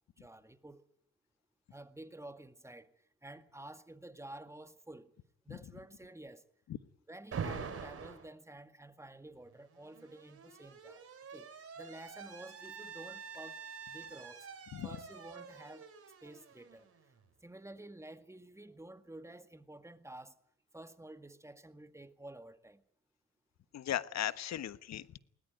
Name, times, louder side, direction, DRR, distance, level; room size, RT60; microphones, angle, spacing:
voice 1, 0.2-0.8 1.7-2.9 3.2-5.1 5.5-6.4 7.1-11.0 11.3-11.5 11.8-13.6 13.9-14.5 14.8-15.9 16.2-16.9 17.4-20.3 20.7-22.8, right 1 dB, 10° right, 1.9 m, -51 dB
Alarm, 7.3-8.3 9.5-17.2, right 6 dB, 50° right, 4.1 m, -46 dB
voice 2, 23.7-25.2, left 11 dB, 65° left, 1.3 m, -37 dB
20.5 x 19.0 x 9.2 m
supercardioid pair, 60°, 29 cm